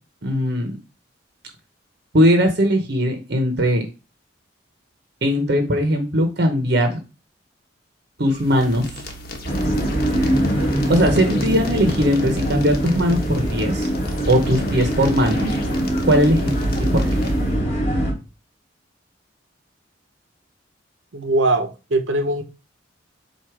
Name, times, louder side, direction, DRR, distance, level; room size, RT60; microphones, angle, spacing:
voice 1, 0.2-0.8 2.1-3.8 5.2-7.0 8.2-8.9 10.9-13.9 14.3-15.5 16.0-16.4 16.8-17.0, equal, 55° right, 1.0 m, -19 dB
sound 1, 8.2-17.6, left 1 dB, 55° left, 1.3 m, -35 dB
sound 2, 9.4-18.1, right 1 dB, 35° left, 2.8 m, -22 dB
voice 2, 21.1-22.4, right 2 dB, 85° right, 1.0 m, -21 dB
7.8 x 2.6 x 4.9 m
head